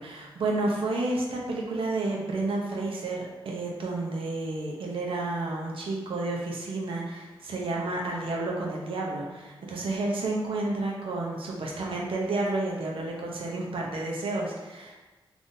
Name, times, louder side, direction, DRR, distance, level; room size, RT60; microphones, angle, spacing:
voice 1, 0.0-15.0, right 2 dB, 75° right, -2 dB, 0.6 m, -31 dB
3.6 x 2.5 x 2.6 m, 1.2 s
cardioid pair, 80°, 9 cm